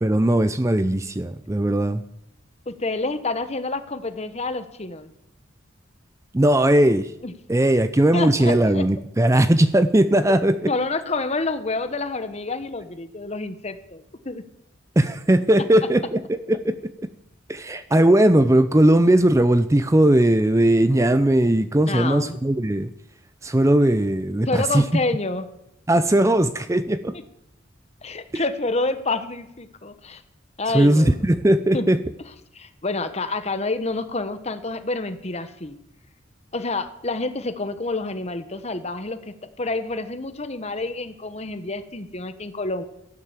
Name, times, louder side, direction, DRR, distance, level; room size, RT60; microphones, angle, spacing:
voice 1, 0.0-2.0 6.3-7.1 7.5-10.7 15.0-17.1 17.5-22.9 23.4-24.8 25.9-27.1 28.3-28.4 30.7-32.0, right 1 dB, 15° right, 12 dB, 0.5 m, -18 dB
voice 2, 2.7-5.1 7.2-7.3 8.1-8.8 10.7-14.4 21.9-22.4 24.5-25.5 28.0-30.2 30.6-31.3 31.7-31.9 32.5-35.8 36.5-42.8, left 3 dB, 35° left, 11 dB, 1.1 m, -28 dB
13.5 x 11.5 x 7.3 m, 0.81 s
head